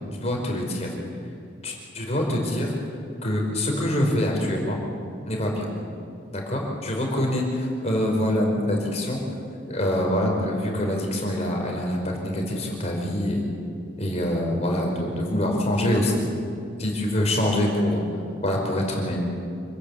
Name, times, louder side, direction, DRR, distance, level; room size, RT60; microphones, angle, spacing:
voice 1, 0.2-1.0 1.6-2.7 3.2-4.8 5.3-5.7 6.3-9.2 9.7-13.4 14.0-16.2 16.8-18.0 18.4-19.2, left 1 dB, 35° left, 0 dB, 5.1 m, -25 dB
27.0 x 20.0 x 8.6 m, 2.4 s
head